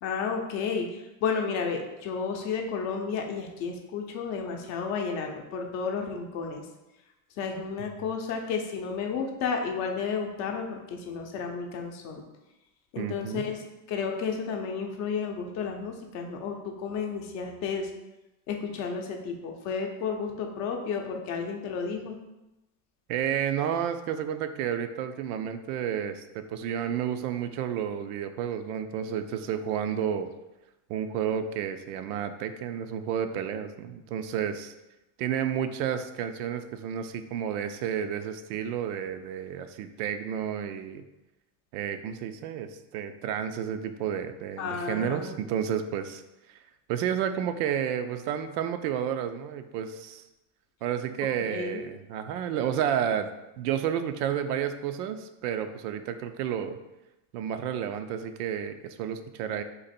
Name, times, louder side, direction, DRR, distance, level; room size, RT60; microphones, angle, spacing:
voice 1, 0.0-6.6 7.4-12.2 12.9-13.6 13.9-17.9 18.5-22.2 44.6-45.3 51.4-51.8, left 5 dB, 40° left, 3 dB, 0.6 m, -32 dB
voice 2, 13.0-13.4 23.1-30.3 30.9-34.7 35.2-41.0 41.7-46.2 46.5-46.6 46.9-50.2 50.8-53.3 53.6-56.8 57.3-59.6, right 9 dB, 85° right, 9 dB, 0.6 m, -31 dB
4.0 x 2.9 x 4.2 m, 0.98 s
cardioid pair, 155°, 44 cm